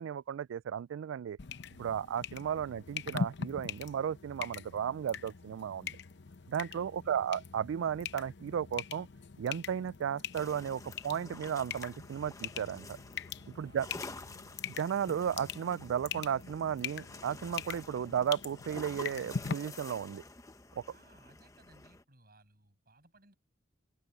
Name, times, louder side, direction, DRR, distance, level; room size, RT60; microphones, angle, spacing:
voice 1, 0.0-1.4 1.8-6.0 6.5-9.1 9.4-13.0 13.6-13.9 14.8-20.2 20.8-20.9, right 8 dB, 75° right, 0.3 m, -34 dB
sound 1, 1.4-19.5, left 6 dB, 60° left, 0.8 m, -42 dB
voice 2, 7.0-7.4 13.6-14.4 20.9-23.3, right 1 dB, 50° right, 6.9 m, -63 dB
sound 2, 10.3-22.0, left 3 dB, 15° left, 1.1 m, -50 dB
open air
head